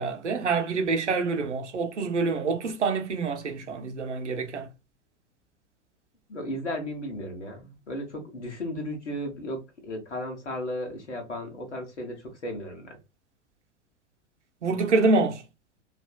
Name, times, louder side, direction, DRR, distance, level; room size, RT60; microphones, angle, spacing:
voice 1, 0.0-4.7 14.6-15.4, right 4 dB, 75° right, 0.8 m, -26 dB
voice 2, 6.3-13.0, left 1 dB, 75° left, 1.0 m, -35 dB
3.3 x 2.5 x 2.2 m
figure-of-eight pair, 90°, 35 cm